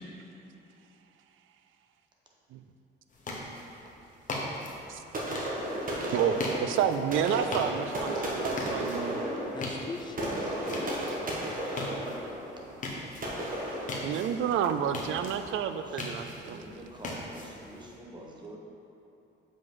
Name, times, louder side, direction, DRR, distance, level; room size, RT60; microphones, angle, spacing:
sound 1, 3.1-18.0, left 2 dB, 40° left, 1.2 m, -41 dB
sound 2, 5.1-14.8, right 1 dB, 45° right, 1.5 m, -34 dB
voice 1, 6.1-9.2 14.0-16.6, right 8 dB, 80° right, 9 dB, 0.4 m, -30 dB
voice 2, 9.5-11.6, left 3 dB, 20° left, 4 dB, 0.6 m, -41 dB
voice 3, 15.8-18.6, right 1 dB, 20° right, -2 dB, 1.2 m, -47 dB
7.6 x 5.1 x 3.9 m, 2.9 s
cardioid pair, 90°, 20 cm